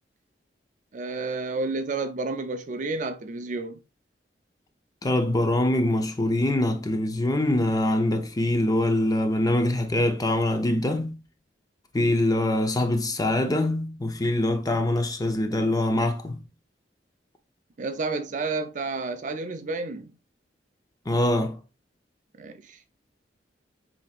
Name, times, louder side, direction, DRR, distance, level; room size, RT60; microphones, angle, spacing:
voice 1, 0.9-3.8 17.8-20.1 22.4-22.8, right 3 dB, 45° right, 0.5 m, -30 dB
voice 2, 5.0-11.2 11.9-16.4 21.1-21.6, left 1 dB, 20° left, 0.6 m, -24 dB
7.5 x 2.8 x 2.4 m
head